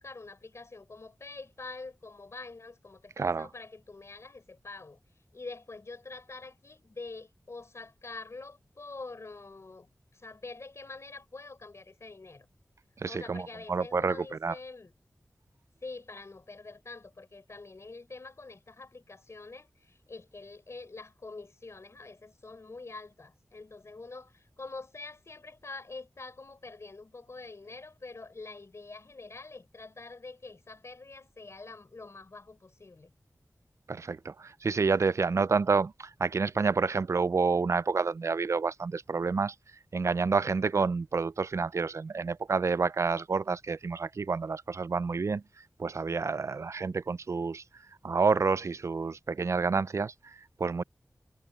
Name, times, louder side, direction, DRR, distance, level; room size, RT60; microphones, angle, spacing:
voice 1, 0.0-5.0 5.3-12.5 13.1-14.9 15.8-33.1, left 3 dB, 60° left, 5.1 m, -45 dB
voice 2, 3.2-3.5 13.0-14.6 33.9-39.5 39.9-45.4 45.8-47.6 48.0-50.8, right 4 dB, 60° right, 0.4 m, -29 dB
wide cardioid pair, 70°, 5 cm